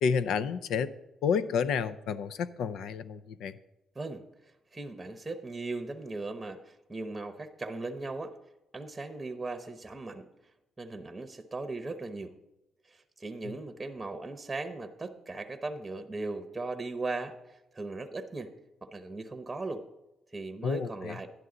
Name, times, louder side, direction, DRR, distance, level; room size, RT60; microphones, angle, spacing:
voice 1, 0.0-0.9 1.2-3.5 20.6-21.2, left 6 dB, 80° left, 14 dB, 0.5 m, -30 dB
voice 2, 3.9-4.2 4.7-8.3 8.7-10.3 10.8-12.3 12.9-18.5 18.8-19.8 20.3-21.3, right 3 dB, 15° right, 8 dB, 0.9 m, -38 dB
11.5 x 11.0 x 3.8 m, 0.98 s
cardioid pair, 90°, 0 cm